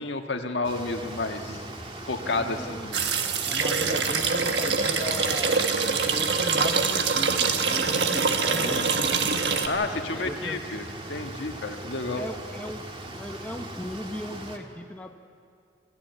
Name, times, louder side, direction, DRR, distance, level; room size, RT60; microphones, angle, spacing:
voice 1, 0.0-1.6 2.1-3.2 8.4-9.0 9.6-12.2, left 3 dB, 85° left, 4 dB, 1.5 m, -31 dB
sound 1, 0.6-14.6, right 1 dB, 30° right, 1.7 m, -39 dB
voice 2, 2.3-2.9 3.5-9.4 10.1-10.6 12.1-12.8 13.2-15.1, left 1 dB, 10° left, 3 dB, 1.0 m, -37 dB
sound 2, 2.9-9.7, right 5 dB, 70° right, 1.4 m, -24 dB
25.5 x 14.5 x 8.1 m, 2.4 s
head